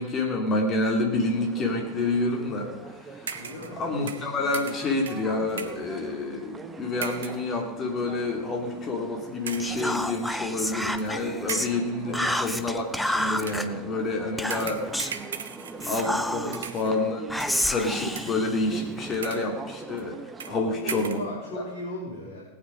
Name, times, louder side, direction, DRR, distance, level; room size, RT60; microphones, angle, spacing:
voice 1, 0.0-3.4 3.8-14.9 15.9-20.2 20.5-21.2 21.5-21.6, left 2 dB, 25° left, 2 dB, 2.8 m, -28 dB
sound 1, 1.1-20.6, right 3 dB, 15° right, 1.1 m, -42 dB
voice 2, 3.3-3.8 12.0-12.4 16.4-16.6 20.4-22.4, left 1 dB, 40° left, -6 dB, 4.2 m, -38 dB
sound 2, 3.3-3.8 4.1-5.9 7.0-7.5 8.2-8.3 9.5-9.9 11.0-11.1 11.5-11.9 13.4-13.7 14.5-16.2 16.5-17.0 17.4-17.7 18.1-18.6 19.1-19.6 20.0-20.1 20.4-20.6 20.9-21.3, right 7 dB, 65° right, 0.9 m, -38 dB
Whispering, 9.6-11.7 12.1-13.7 14.4-15.2 15.8-16.7 17.3-19.2, left 1 dB, ahead, 0.7 m, -30 dB
18.0 x 9.1 x 5.1 m, 1.2 s
figure-of-eight pair, 90°, 0 cm